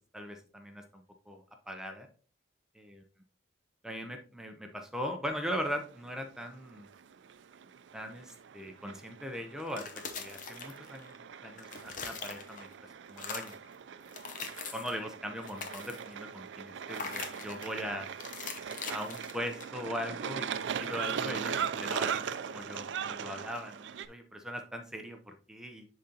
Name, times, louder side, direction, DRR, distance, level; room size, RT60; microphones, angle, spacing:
voice 1, 0.0-2.1 2.7-3.0 3.8-6.9 7.9-11.1 11.4-12.7 13.1-13.5 14.7-18.1 18.9-20.5 20.8-25.9, equal, 5° right, 4 dB, 0.6 m, -40 dB
sound 1, 5.3-24.1, right 7 dB, 80° right, 0.4 m, -40 dB
sound 2, 9.6-11.2 11.5-12.7 13.1-13.7 14.1-15.0 15.4-16.2 16.9-17.8 18.2-19.9, left 5 dB, 45° left, 0.8 m, -42 dB
10.5 x 3.8 x 2.8 m, 0.38 s
head